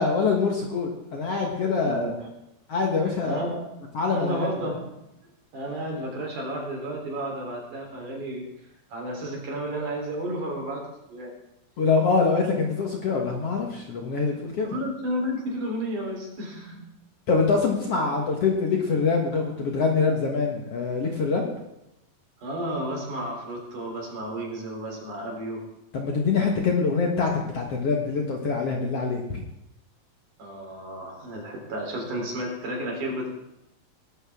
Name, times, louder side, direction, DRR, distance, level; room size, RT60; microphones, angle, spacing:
voice 1, 0.0-2.1 2.7-3.4 3.9-4.5 11.8-14.8 17.3-21.5 25.9-29.4, left 4 dB, 55° left, 1 dB, 2.0 m, -24 dB
voice 2, 1.8-2.2 3.2-3.6 4.1-4.9 5.5-8.5 8.9-10.8 11.1-11.3 14.6-16.8 22.4-25.7 30.4-33.3, right 1 dB, 60° right, 0 dB, 5.1 m, -32 dB
20.0 x 12.0 x 3.6 m, 0.86 s
omnidirectional pair, 4.1 m